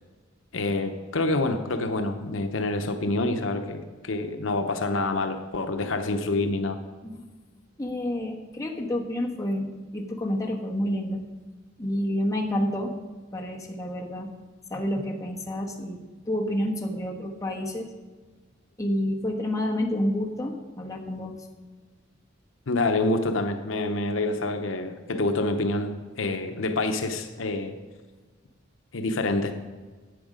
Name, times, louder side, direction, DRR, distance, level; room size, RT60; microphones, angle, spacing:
voice 1, 0.5-6.8 22.7-27.8 28.9-29.5, left 2 dB, 75° left, 7 dB, 0.8 m, -27 dB
voice 2, 7.8-11.2 11.8-12.9 13.3-14.3 14.7-16.0 16.3-17.9 18.8-21.4, left 1 dB, 15° left, 0 dB, 1.2 m, -29 dB
11.5 x 8.0 x 5.1 m, 1.3 s
head